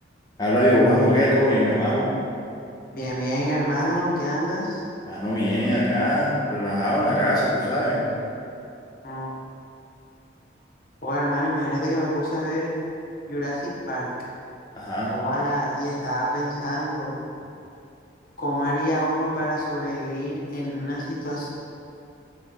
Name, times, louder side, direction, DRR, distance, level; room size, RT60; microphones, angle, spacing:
voice 1, 0.4-2.1 5.1-8.1 14.7-15.1, equal, 20° left, -7 dB, 1.5 m, -21 dB
voice 2, 2.9-4.8 9.0-9.4 11.0-12.8 13.3-14.1 15.1-17.1 18.4-21.5, equal, 50° left, -5 dB, 1.4 m, -27 dB
8.3 x 4.9 x 3.9 m, 2.7 s
head